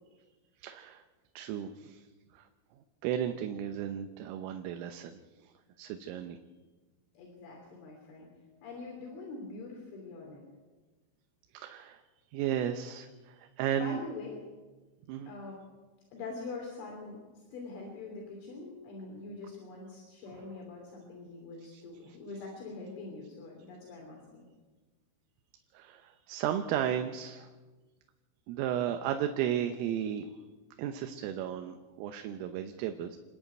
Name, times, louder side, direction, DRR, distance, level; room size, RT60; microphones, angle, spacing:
voice 1, 0.6-1.0 1.4-2.0 2.3-2.5 3.0-6.4 11.5-12.0 12.3-14.0 15.1-15.3 21.7-21.8 22.1-22.2 25.7-27.5 28.5-30.3 30.8-33.2, right 10 dB, 90° right, 7 dB, 3.6 m, -34 dB
voice 2, 7.2-8.3 8.6-10.4 13.8-14.4 15.3-15.6 16.1-24.4, left 3 dB, 70° left, -1 dB, 5.5 m, -44 dB
29.0 x 11.0 x 9.0 m, 1.3 s
omnidirectional pair, 5.7 m